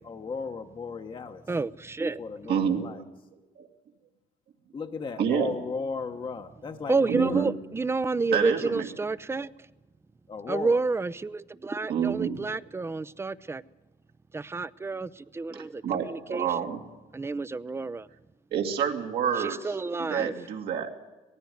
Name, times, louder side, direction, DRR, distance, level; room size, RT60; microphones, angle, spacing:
voice 1, 0.0-1.4 2.2-3.0 4.7-7.5 10.3-10.8, left 5 dB, 30° left, 5 dB, 1.0 m, -35 dB
voice 2, 1.5-2.2 6.9-9.5 10.5-13.6 14.3-16.5 17.1-18.1 19.4-20.4, right 3 dB, 15° right, 17 dB, 0.6 m, -29 dB
voice 3, 2.5-2.9 3.6-3.7 5.2-5.6 7.1-7.5 8.3-8.9 11.9-12.6 15.8-16.8 18.5-19.7 20.0-20.9, right 7 dB, 70° right, 1 dB, 2.3 m, -28 dB
18.5 x 15.0 x 9.4 m, 1.1 s
cardioid pair, 110°, 17 cm